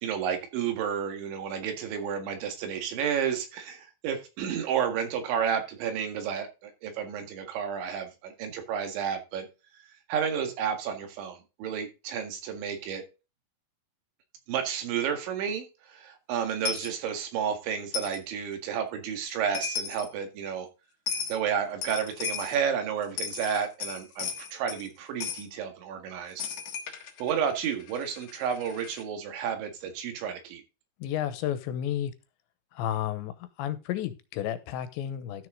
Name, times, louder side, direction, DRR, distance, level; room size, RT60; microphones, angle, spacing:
voice 1, 0.0-9.5 10.1-13.0 14.5-20.7 21.3-26.5 27.2-30.6, right 7 dB, 85° right, 5 dB, 4.2 m, -31 dB
Coin (dropping), 16.6-16.9 17.9-18.2 19.3-19.4 19.5-20.1 21.1-21.4 21.8-22.6 23.0-24.9 25.2-25.4 26.4-29.0, left 6 dB, 60° left, 2.2 m, -35 dB
voice 2, 31.0-32.1 32.7-33.3 33.6-35.5, left 11 dB, 85° left, 12 dB, 3.2 m, -31 dB
13.0 x 6.3 x 3.7 m, 0.29 s
omnidirectional pair, 5.1 m